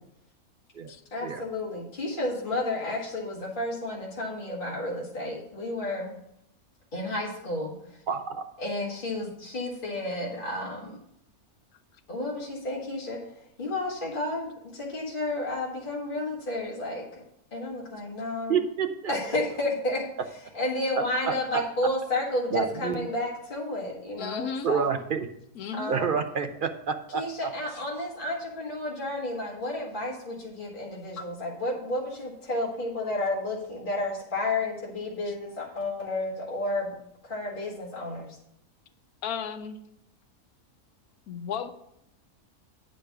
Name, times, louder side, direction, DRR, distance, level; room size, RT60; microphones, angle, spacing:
voice 1, 1.1-6.1 6.9-7.7 8.6-11.0 12.1-13.2 13.6-17.2 17.5-18.6 19.1-20.0 20.5-24.9 25.7-26.1 27.1-36.9 37.2-38.4, left 2 dB, 35° left, -4 dB, 1.6 m, -31 dB
voice 2, 8.1-8.4 18.5-19.1 21.3-21.6 22.5-23.1 24.6-25.3 25.9-27.5, right 6 dB, 50° right, 6 dB, 0.6 m, -28 dB
voice 3, 24.2-24.7 25.6-25.9 31.2-31.3 39.2-39.8 41.3-41.7, left 7 dB, 75° left, 8 dB, 1.2 m, -34 dB
9.0 x 5.1 x 5.9 m, 0.75 s
omnidirectional pair, 1.6 m